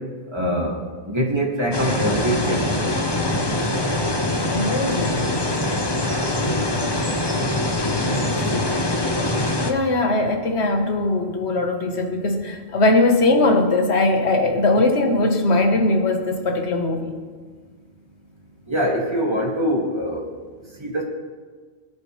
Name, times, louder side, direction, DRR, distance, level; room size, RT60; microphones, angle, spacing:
voice 1, 0.3-0.8 1.1-2.7 6.1-6.3 18.7-20.3 20.8-21.0, equal, 25° right, -2 dB, 2.1 m, -23 dB
sound 1, 1.7-9.7, left 1 dB, 25° left, 1.0 m, -23 dB
voice 2, 4.5-5.3 8.0-8.7 9.6-17.2, left 2 dB, 70° left, 5 dB, 1.5 m, -20 dB
21.5 x 10.5 x 3.2 m, 1.5 s
omnidirectional pair, 1.1 m